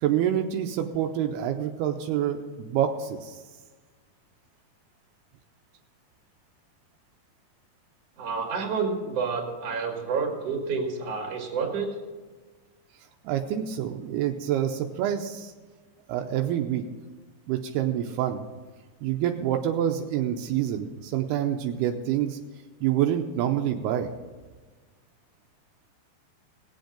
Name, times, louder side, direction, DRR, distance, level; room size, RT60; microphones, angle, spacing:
voice 1, 0.0-3.4 13.2-15.5 16.1-16.8 17.5-18.4 19.0-22.4 22.8-24.1, right 10 dB, 85° right, 4 dB, 2.6 m, -27 dB
voice 2, 8.2-12.0, right 5 dB, 45° right, 2 dB, 2.7 m, -29 dB
19.5 x 8.0 x 5.1 m, 1.4 s
omnidirectional pair, 4.8 m